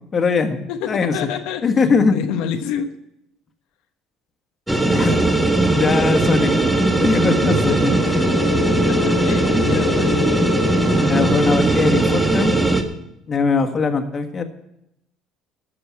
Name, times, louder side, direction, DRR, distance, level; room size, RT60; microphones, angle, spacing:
voice 1, 0.1-1.2 1.6-2.2 4.9-5.2 5.7-6.5 7.0-8.2 11.1-12.6 13.3-14.4, left 4 dB, 35° left, 6 dB, 1.6 m, -20 dB
voice 2, 0.7-1.6 2.1-2.9 8.9-10.3, left 8 dB, 80° left, 5 dB, 1.0 m, -27 dB
sound 1, 4.7-12.8, right 1 dB, 5° right, 1.7 m, -18 dB
13.5 x 6.8 x 8.4 m, 0.82 s
cardioid pair, 110°, 0 cm